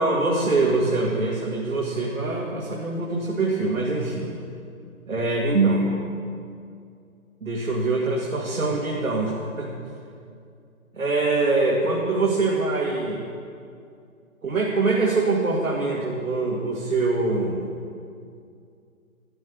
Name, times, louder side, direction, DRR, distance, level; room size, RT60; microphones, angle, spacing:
voice 1, 0.0-4.3 5.1-6.1 7.4-9.7 10.9-13.2 14.4-17.7, right 3 dB, 70° right, -3 dB, 2.3 m, -24 dB
12.5 x 8.2 x 9.2 m, 2.4 s
figure-of-eight pair, 150°, 42 cm